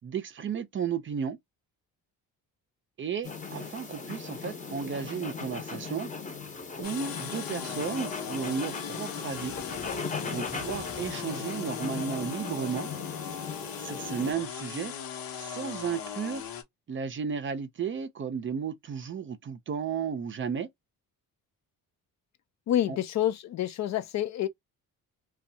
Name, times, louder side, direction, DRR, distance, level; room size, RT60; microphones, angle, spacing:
voice 1, 0.0-1.4 3.0-6.1 6.8-9.5 10.2-12.9 13.8-14.9 15.4-16.5 16.9-20.7 22.9-23.0, right 7 dB, 35° right, 0.5 m, -34 dB
sound 1, 3.2-14.3, left 5 dB, 20° left, 0.7 m, -38 dB
sound 2, 6.8-16.6, left 8 dB, 80° left, 0.9 m, -39 dB
voice 2, 22.7-24.5, left 11 dB, 55° left, 0.4 m, -28 dB
2.6 x 2.3 x 2.6 m
cardioid pair, 145°, 34 cm